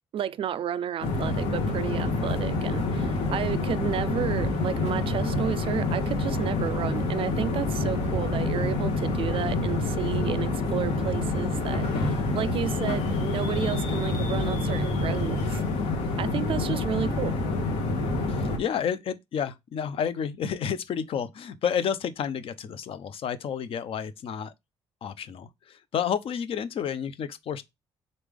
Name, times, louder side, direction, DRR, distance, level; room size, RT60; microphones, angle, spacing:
voice 1, 0.1-15.6 16.2-17.4, right 9 dB, 60° right, 0.4 m, -32 dB
sound 1, 1.0-18.6, left 2 dB, 80° left, 1.2 m, -27 dB
voice 2, 18.3-24.5 25.0-27.6, left 8 dB, 60° left, 0.5 m, -30 dB
3.8 x 3.3 x 3.5 m
cardioid pair, 95°, 10 cm